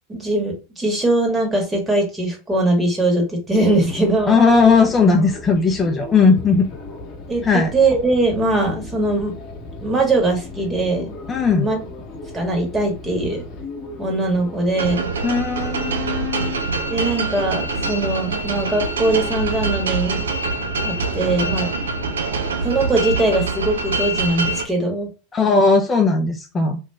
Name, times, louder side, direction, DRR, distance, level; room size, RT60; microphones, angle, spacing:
voice 1, 0.1-4.4 7.3-9.3 9.8-11.1 11.6-11.8 12.3-13.4 14.0-15.1 16.9-20.3 20.8-21.7 22.6-25.1, right 2 dB, 15° right, 1 dB, 1.2 m, -21 dB
sound 1, 3.5-23.4, left 2 dB, 40° left, 0.9 m, -36 dB
voice 2, 4.3-6.7 7.4-7.7 11.3-11.7 15.2-16.6 25.3-26.8, left 4 dB, 25° left, 2 dB, 0.4 m, -17 dB
sound 2, 14.8-24.6, right 3 dB, 80° right, 0.3 m, -25 dB
3.0 x 2.4 x 2.2 m, 0.32 s
hypercardioid pair, 90°, 0 cm